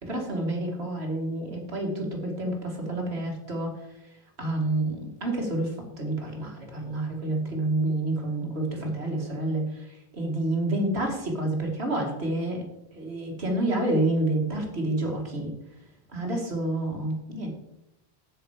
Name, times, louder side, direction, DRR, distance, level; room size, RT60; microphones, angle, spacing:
voice 1, 0.0-3.9 4.4-12.6 12.9-15.5 16.1-17.5, right 1 dB, 90° right, 1 dB, 2.5 m, -29 dB
8.9 x 8.6 x 5.0 m, 0.85 s
omnidirectional pair, 1.1 m